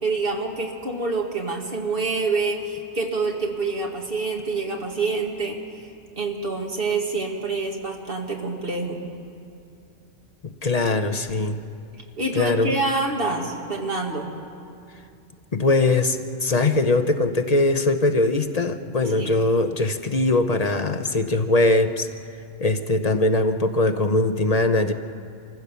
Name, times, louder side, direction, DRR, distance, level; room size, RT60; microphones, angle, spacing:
voice 1, 0.0-5.6 6.2-9.0 12.2-14.4 19.1-19.4, right 3 dB, 50° right, 1 dB, 2.0 m, -26 dB
voice 2, 10.4-11.6 12.3-12.7 15.5-22.1 22.6-24.9, left 2 dB, 35° left, 8 dB, 0.7 m, -21 dB
25.0 x 15.5 x 6.9 m, 2.5 s
omnidirectional pair, 1.3 m